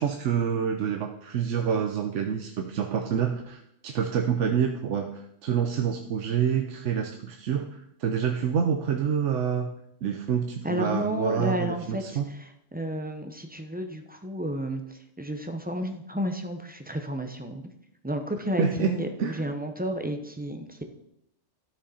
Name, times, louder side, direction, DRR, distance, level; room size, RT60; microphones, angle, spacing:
voice 1, 0.0-9.7 10.0-12.3 18.6-19.4, right 7 dB, 70° right, 5 dB, 1.0 m, -27 dB
voice 2, 10.6-17.6 18.0-20.8, equal, 10° right, 5 dB, 0.5 m, -32 dB
12.0 x 6.4 x 4.2 m, 0.75 s
omnidirectional pair, 1.4 m